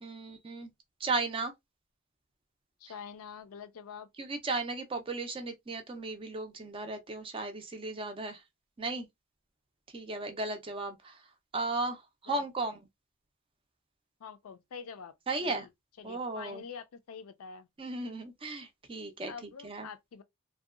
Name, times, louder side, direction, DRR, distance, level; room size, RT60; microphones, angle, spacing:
voice 1, 0.0-0.7 1.0-1.5 4.2-8.4 8.8-9.1 9.9-11.2 11.5-12.8 15.3-15.7 16.0-16.6 17.8-19.9, right 3 dB, 25° right, 0.4 m, -35 dB
voice 2, 2.8-4.1 12.3-12.4 14.2-15.1 15.4-15.7 16.0-17.7 19.3-20.2, left 6 dB, 70° left, 0.4 m, -46 dB
2.6 x 2.2 x 2.4 m
head